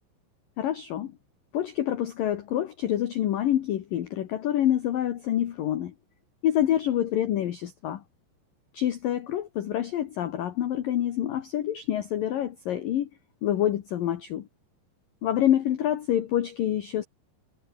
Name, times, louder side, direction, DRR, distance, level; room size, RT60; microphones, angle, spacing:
voice 1, 0.6-1.1 1.5-5.9 6.4-8.0 8.7-13.1 13.4-14.5 15.2-17.0, left 11 dB, 65° left, 2.4 m, -27 dB
omnidirectional pair, 5.9 m